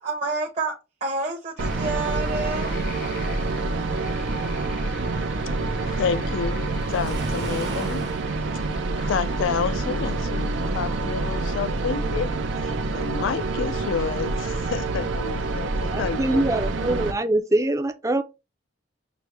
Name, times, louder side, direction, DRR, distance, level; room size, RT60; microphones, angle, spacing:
voice 1, 0.0-2.8, right 3 dB, 35° right, 0.8 m, -29 dB
sound 1, 1.6-8.7, left 6 dB, 50° left, 0.7 m, -45 dB
sound 2, 1.6-17.1, right 3 dB, 80° right, 0.5 m, -27 dB
voice 2, 5.8-8.1 8.7-16.5, left 6 dB, 85° left, 0.3 m, -30 dB
Waves surf, 6.8-8.3, right 3 dB, 60° right, 1.2 m, -35 dB
voice 3, 15.9-18.2, right 1 dB, 15° right, 0.4 m, -23 dB
6.1 x 2.1 x 3.2 m
head